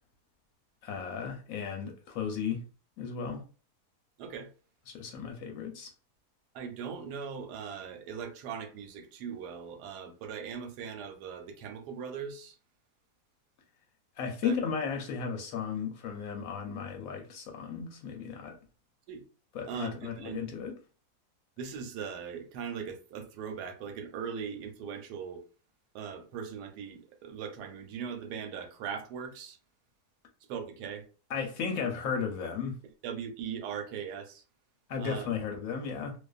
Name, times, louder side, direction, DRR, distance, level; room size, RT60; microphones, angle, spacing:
voice 1, 0.8-2.6 3.0-3.4 4.9-5.9 14.2-18.6 19.5-20.7 31.3-32.7 34.9-36.1, left 6 dB, 70° left, 0.9 m, -35 dB
voice 2, 4.2-4.5 6.5-12.6 14.4-14.6 19.1-19.2 19.6-20.5 21.6-25.4 25.9-29.6 30.5-31.1 33.0-34.4 35.0-35.3, right 7 dB, 85° right, 1.1 m, -40 dB
2.5 x 2.3 x 2.3 m
omnidirectional pair, 1.7 m